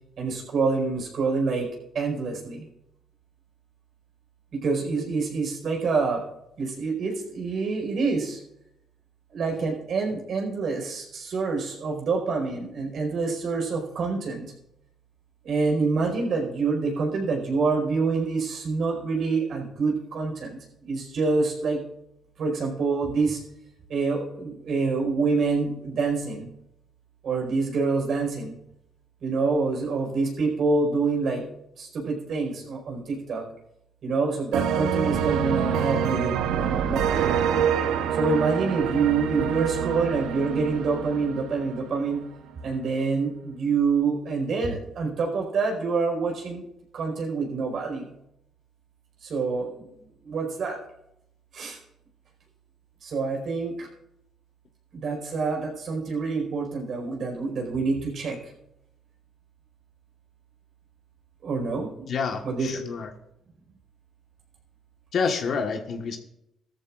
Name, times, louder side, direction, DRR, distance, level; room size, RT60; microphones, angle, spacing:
voice 1, 0.2-1.7 1.9-2.7 4.5-6.2 6.6-8.4 9.3-14.5 15.4-21.8 22.4-23.4 23.9-26.5 27.2-28.5 29.2-31.4 31.8-33.5 34.0-37.3 38.1-42.3 42.6-46.6 46.9-48.1 49.2-49.9 50.2-50.8 51.5-51.8 53.0-53.9 54.9-58.5 61.4-62.1 62.4-62.7, right 4 dB, 65° right, 1 dB, 4.6 m, -26 dB
sound 1, 34.5-42.2, right 8 dB, 90° right, 0.9 m, -26 dB
voice 2, 62.1-63.1 65.1-66.2, left 5 dB, 60° left, 4 dB, 1.4 m, -28 dB
17.0 x 13.5 x 2.5 m, 0.81 s
cardioid pair, 90°, 0 cm